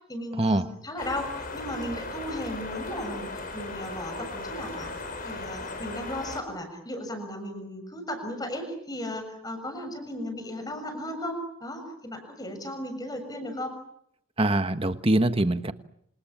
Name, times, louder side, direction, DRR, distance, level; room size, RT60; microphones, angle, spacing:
voice 1, 0.1-4.9 5.2-13.8, left 1 dB, 20° left, 7 dB, 6.7 m, -35 dB
sound 1, 1.0-6.4, left 2 dB, 40° left, 5.2 m, -37 dB
voice 2, 14.4-15.7, right 1 dB, 25° right, 10 dB, 1.3 m, -23 dB
28.5 x 28.0 x 7.2 m, 0.71 s
head